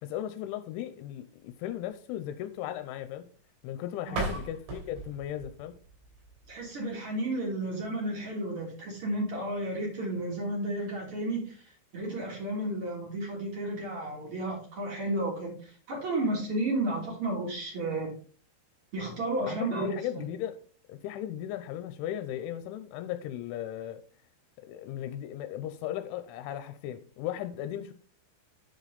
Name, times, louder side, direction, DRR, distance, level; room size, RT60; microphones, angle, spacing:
voice 1, 0.0-3.2 3.6-5.7 19.5-20.6 20.9-24.0 24.7-27.9, left 11 dB, 90° left, 3.1 m, -37 dB
sound 1, 4.0-6.9, right 3 dB, 65° right, 5.2 m, -38 dB
voice 2, 4.1-4.4 6.5-18.1 18.9-20.2, right 1 dB, 30° right, 3.3 m, -32 dB
10.5 x 5.1 x 4.0 m
omnidirectional pair, 5.5 m